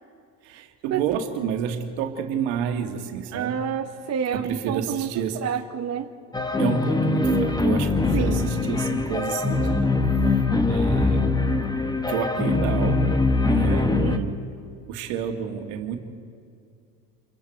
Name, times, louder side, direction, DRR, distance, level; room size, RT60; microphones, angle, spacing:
voice 1, 0.4-3.6 4.3-5.4 6.6-10.0 10.7-11.5 12.1-13.2 13.5-14.4 14.9-16.0, right 8 dB, 70° right, 5 dB, 2.0 m, -30 dB
voice 2, 3.3-5.1 5.3-6.1 7.2-7.8 8.1-8.5 14.0-14.3, right 8 dB, 35° right, 6 dB, 1.0 m, -28 dB
sound 1, 6.3-14.2, left 3 dB, 10° left, 1.0 m, -22 dB
28.5 x 23.0 x 4.5 m, 2.4 s
supercardioid pair, 90°, 47 cm